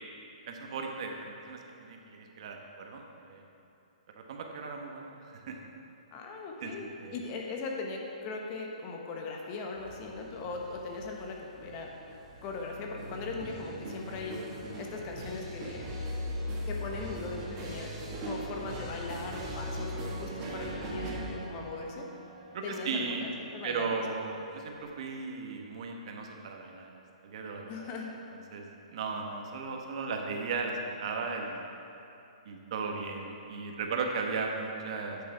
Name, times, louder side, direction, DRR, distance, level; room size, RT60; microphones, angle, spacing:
voice 1, 0.5-3.4 4.1-5.6 6.6-6.7 7.0-7.2 22.5-23.2 23.6-27.9 28.3-28.6 28.9-31.6 32.4-35.2, right 4 dB, 50° right, 2 dB, 1.1 m, -36 dB
voice 2, 6.1-11.9 12.4-14.3 14.8-15.9 16.7-17.9 18.2-22.1 22.6-24.0 27.7-28.1, left 3 dB, 30° left, 1 dB, 1.1 m, -39 dB
sound 1, 9.8-24.8, equal, 30° right, 1.8 m, -40 dB
9.4 x 6.7 x 4.6 m, 2.9 s
hypercardioid pair, 150°, 4 cm